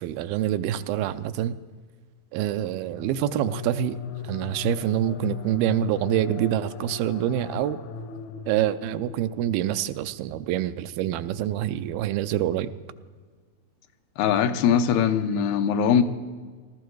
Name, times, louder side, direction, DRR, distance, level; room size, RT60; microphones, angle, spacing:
voice 1, 0.0-1.6 2.3-4.0 4.2-7.8 8.5-12.7, right 12 dB, 85° right, 12 dB, 2.5 m, -26 dB
sound 1, 2.8-9.7, left 6 dB, 70° left, 1.9 m, -37 dB
voice 2, 14.2-16.0, left 8 dB, 85° left, 8 dB, 2.8 m, -21 dB
19.0 x 14.5 x 4.7 m, 1.5 s
omnidirectional pair, 4.3 m